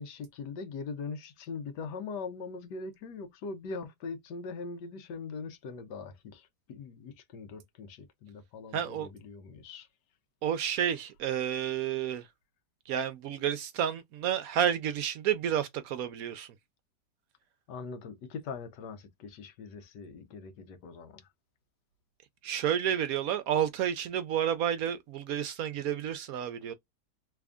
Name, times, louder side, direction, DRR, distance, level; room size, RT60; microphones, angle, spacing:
voice 1, 0.0-9.9 17.7-21.2, left 4 dB, 85° left, 1.4 m, -41 dB
voice 2, 8.7-9.1 10.4-12.3 12.9-16.6 22.4-26.7, right 9 dB, 70° right, 0.9 m, -30 dB
3.4 x 2.5 x 3.4 m
omnidirectional pair, 1.8 m